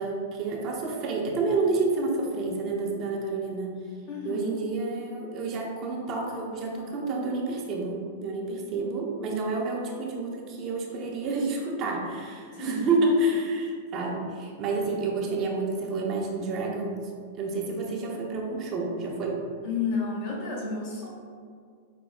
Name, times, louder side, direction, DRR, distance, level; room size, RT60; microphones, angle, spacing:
voice 1, 0.0-3.8 4.2-17.1 17.4-19.4, right 3 dB, 40° right, -1 dB, 0.7 m, -29 dB
voice 2, 4.1-4.6 12.5-12.9 19.6-21.1, left 4 dB, 55° left, -4 dB, 1.2 m, -31 dB
5.1 x 2.2 x 3.6 m, 2.1 s
hypercardioid pair, 115°, 0 cm